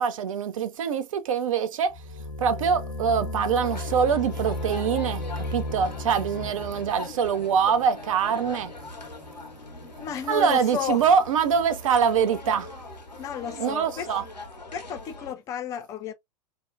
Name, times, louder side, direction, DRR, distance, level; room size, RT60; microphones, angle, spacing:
voice 1, 0.0-2.0 2.4-8.7 10.3-12.7 13.6-14.2, right 7 dB, 55° right, 0.5 m, -24 dB
sound 1, 1.9-7.0, left 1 dB, 60° left, 0.6 m, -34 dB
sound 2, 3.6-15.3, left 2 dB, 90° left, 0.8 m, -41 dB
sound 3, 4.2-11.7, left 3 dB, 20° right, 0.7 m, -51 dB
voice 2, 10.0-11.0 13.2-14.1 14.7-16.1, left 7 dB, 15° left, 0.3 m, -32 dB
2.6 x 2.1 x 2.4 m
figure-of-eight pair, 105°, 21 cm